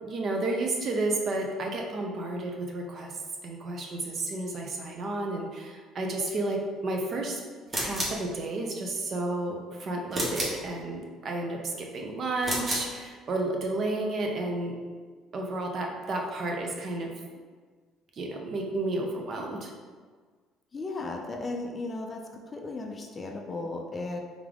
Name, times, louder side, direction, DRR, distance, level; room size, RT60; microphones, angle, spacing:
voice 1, 0.0-3.1 3.4-7.4 7.8-14.8 15.3-17.1 18.2-19.7, right 2 dB, 40° right, 1 dB, 0.6 m, -31 dB
sound 1, 7.7-8.2 10.1-10.6 12.4-12.9, right 1 dB, 25° right, 0.9 m, -30 dB
voice 2, 20.7-24.2, left 2 dB, 20° left, 2 dB, 0.4 m, -35 dB
3.5 x 3.5 x 3.4 m, 1.5 s
cardioid pair, 145°, 0 cm